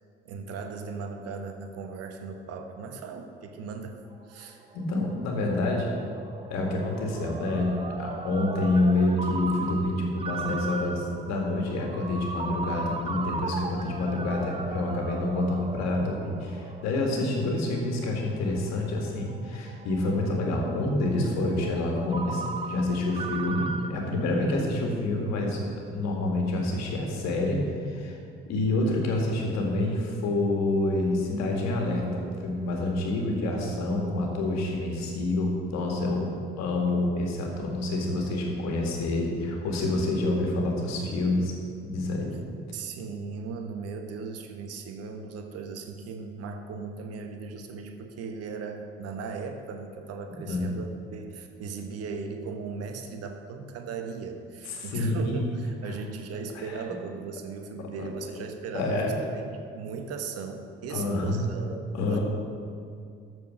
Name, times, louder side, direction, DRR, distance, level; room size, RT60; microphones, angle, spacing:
voice 1, 0.2-4.0 4.3-4.6 42.7-62.2, right 5 dB, 50° right, 6 dB, 1.1 m, -37 dB
Ringtone, 4.1-23.9, right 3 dB, 20° right, 0.7 m, -38 dB
voice 2, 4.4-5.9 6.5-7.7 8.0-28.2 28.5-36.3 36.6-41.5 41.8-42.3 50.3-50.7 54.8-55.5 56.5-56.6 58.0-58.1 58.7-59.1 60.9-61.4 61.9-62.2, left 2 dB, 60° left, 0 dB, 2.1 m, -27 dB
13.5 x 4.7 x 6.3 m, 2.4 s
figure-of-eight pair, 50°, 31 cm